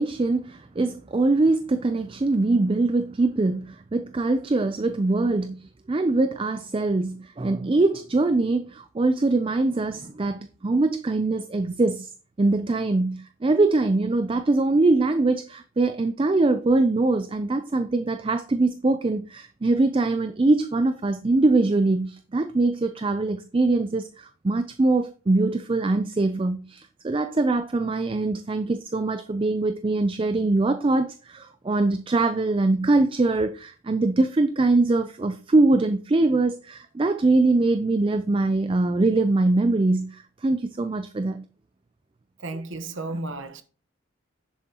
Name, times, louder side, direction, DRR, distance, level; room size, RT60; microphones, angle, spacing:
voice 1, 0.0-12.1 12.4-41.4, right 2 dB, 25° right, 0.4 m, -23 dB
voice 2, 42.4-43.6, right 2 dB, 60° right, 1.1 m, -33 dB
10.5 x 7.1 x 2.9 m
head